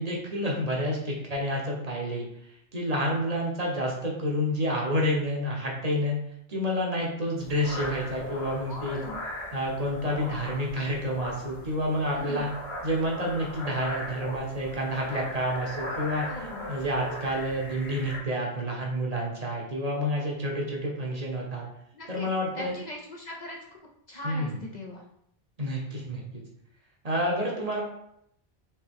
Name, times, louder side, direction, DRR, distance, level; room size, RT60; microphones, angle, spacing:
voice 1, 0.0-6.2 6.5-9.0 9.5-12.5 12.8-21.7 22.1-22.7 24.2-24.7 25.6-26.4 27.0-27.8, equal, 40° right, -2 dB, 0.9 m, -29 dB
sound 1, 7.4-18.2, left 1 dB, 75° left, 1.6 m, -39 dB
voice 2, 8.7-9.2 12.0-12.4 16.2-16.6 21.9-22.3 22.5-23.6 24.1-25.0, left 1 dB, 50° left, -1 dB, 0.6 m, -39 dB
4.4 x 2.8 x 3.5 m, 0.73 s
omnidirectional pair, 1.1 m